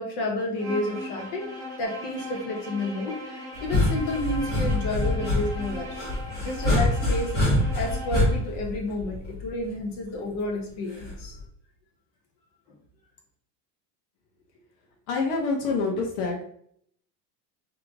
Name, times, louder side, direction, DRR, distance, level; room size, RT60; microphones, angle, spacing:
voice 1, 0.0-1.5 1.8-6.1 6.3-7.4 7.7-11.4, left 1 dB, 45° left, 1 dB, 0.9 m, -30 dB
Bowed string instrument, 0.5-8.4, left 1 dB, 5° right, 0.5 m, -39 dB
sound 1, 3.5-9.6 11.0-11.4, left 1 dB, 20° left, 1.1 m, -25 dB
voice 2, 15.1-16.4, left 3 dB, 75° left, 0 dB, 1.3 m, -26 dB
3.8 x 3.3 x 3.4 m, 0.66 s
cardioid pair, 175°, 48 cm